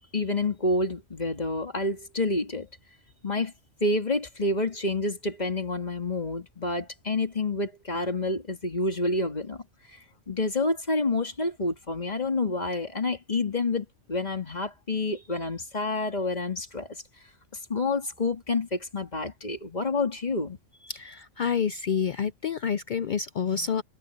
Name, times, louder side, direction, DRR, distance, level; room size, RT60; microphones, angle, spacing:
voice 1, 0.1-2.7 3.2-3.5 3.8-9.6 10.3-17.0 17.7-20.6, left 2 dB, 30° left, 2.4 m, -28 dB
voice 2, 20.9-23.8, left 7 dB, 70° left, 0.4 m, -28 dB
omnidirectional pair, 1.4 m